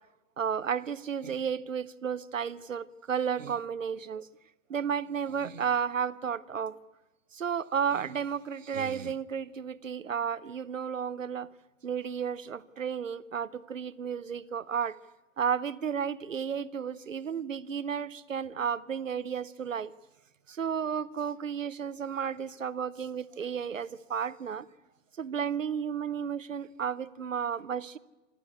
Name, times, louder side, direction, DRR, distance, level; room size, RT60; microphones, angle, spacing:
voice 1, 0.4-4.3 4.7-6.8 7.3-11.5 11.8-15.0 15.4-19.9 20.5-24.7 25.2-28.0, right 7 dB, 85° right, 18 dB, 0.8 m, -33 dB
26.5 x 13.5 x 8.4 m, 1.1 s
figure-of-eight pair, 75°, 38 cm